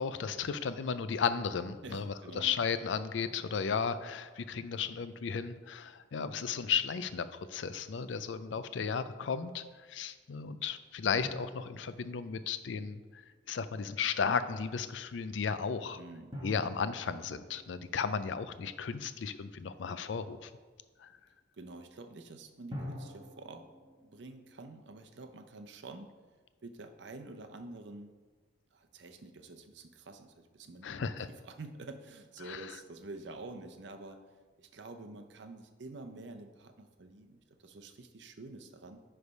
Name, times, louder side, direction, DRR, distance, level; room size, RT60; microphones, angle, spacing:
voice 1, 0.0-16.0 16.4-20.5 21.0-21.1 30.8-31.3 32.5-32.7, left 6 dB, 80° left, 13 dB, 0.4 m, -34 dB
voice 2, 1.8-2.5 15.9-16.3 21.6-23.6 24.0-26.1 26.6-28.1 28.7-34.2 34.6-39.0, right 2 dB, 70° right, 7 dB, 0.6 m, -48 dB
sound 1, 11.2-13.5 16.3-19.3 22.7-24.6, left 1 dB, 25° right, 1.2 m, -48 dB
9.6 x 3.4 x 5.3 m, 1.4 s
head